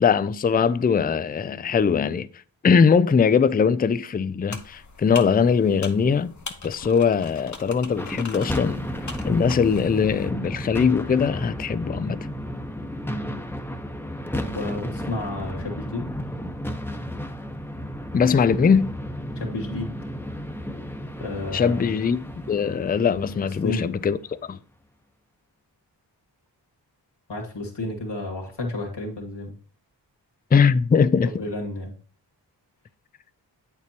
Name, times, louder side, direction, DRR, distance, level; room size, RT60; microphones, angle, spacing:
voice 1, 0.0-2.3 2.6-6.3 6.6-8.8 9.2-12.2 18.1-18.9 21.5-24.2 24.5-24.6 30.5-31.4, left 6 dB, 20° left, 0.4 m, -21 dB
sound 1, 4.5-10.3, left 4 dB, 40° left, 1.0 m, -41 dB
sound 2, 7.9-24.3, equal, 5° left, 0.9 m, -33 dB
voice 2, 13.1-13.4 14.3-16.1 19.4-20.0 21.2-21.9 23.6-23.9 27.3-29.5 31.4-31.9, left 2 dB, 65° left, 2.0 m, -31 dB
8.1 x 6.7 x 2.8 m
cardioid pair, 40°, 44 cm